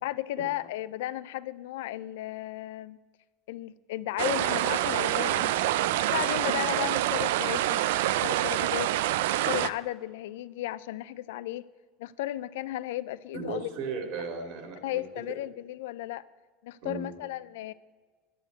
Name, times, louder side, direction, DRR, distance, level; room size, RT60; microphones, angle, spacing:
voice 1, 0.0-3.0 3.5-5.6 6.1-7.8 8.2-8.9 9.3-11.7 12.0-13.7 14.8-16.2 16.6-17.7, left 15 dB, 85° left, 16 dB, 0.3 m, -34 dB
sound 1, 4.2-9.7, right 14 dB, 85° right, 0.4 m, -26 dB
voice 2, 13.3-15.0 16.8-17.1, right 4 dB, 60° right, 5 dB, 2.4 m, -36 dB
10.0 x 6.9 x 9.1 m, 1.4 s
supercardioid pair, 155°, 0 cm